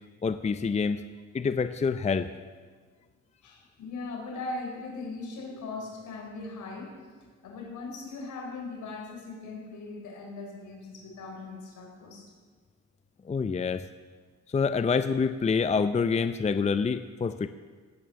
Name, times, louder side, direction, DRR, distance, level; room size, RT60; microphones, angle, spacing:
voice 1, 0.2-1.0 1.3-2.3 13.3-13.8 14.5-17.5, left 5 dB, 25° left, 12 dB, 0.6 m, -26 dB
voice 2, 3.4-12.3, left 3 dB, 75° left, 2 dB, 3.9 m, -39 dB
17.5 x 9.4 x 6.9 m, 1.5 s
cardioid pair, 90°, 30 cm